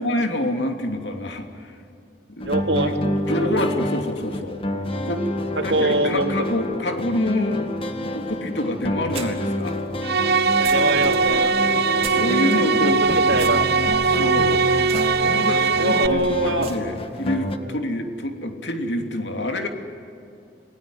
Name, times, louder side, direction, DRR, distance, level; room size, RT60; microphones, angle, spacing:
voice 1, 0.0-1.7 2.3-2.9 3.3-4.6 5.0-5.2 5.6-7.7 8.1-9.7 12.1-13.0 14.1-14.7 15.2-19.7, left 1 dB, 80° left, 4 dB, 2.9 m, -27 dB
sound 1, 2.4-17.6, left 1 dB, 35° left, 1.8 m, -28 dB
voice 2, 2.4-3.1 5.6-6.3 10.5-11.5 12.8-13.7 15.8-16.7 17.6-17.8, right 2 dB, 85° right, 4 dB, 2.7 m, -24 dB
sound 2, 9.1-12.6 13.3-17.3, right 5 dB, 35° right, 3.4 m, -40 dB
sound 3, 10.0-16.1, right 4 dB, 65° right, 0.8 m, -20 dB
29.5 x 19.5 x 9.5 m, 2.6 s
head